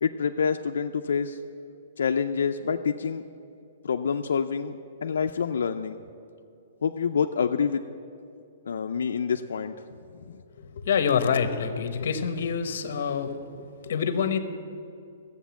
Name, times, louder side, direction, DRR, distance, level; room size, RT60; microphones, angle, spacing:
voice 1, 0.0-1.4 2.0-3.2 3.8-6.0 6.8-7.8 8.7-10.0, left 6 dB, 90° left, 5 dB, 0.5 m, -27 dB
voice 2, 10.5-14.4, left 6 dB, 55° left, 10 dB, 1.0 m, -27 dB
12.5 x 8.1 x 7.1 m, 2.5 s
hypercardioid pair, 170°, 0 cm